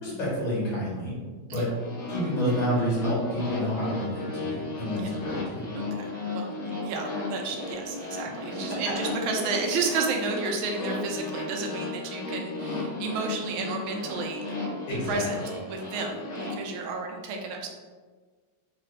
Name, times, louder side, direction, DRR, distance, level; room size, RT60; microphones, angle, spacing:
voice 1, 0.0-1.1 1.5-1.7 2.1-5.6 14.9-15.3, equal, 80° left, -7 dB, 2.3 m, -29 dB
sound 1, 1.8-16.5, left 2 dB, 50° left, 1.0 m, -35 dB
voice 2, 5.7-6.0 6.3-6.5 6.8-17.7, right 3 dB, 80° right, 1 dB, 1.4 m, -32 dB
4.6 x 2.4 x 3.3 m, 1.5 s
omnidirectional pair, 2.2 m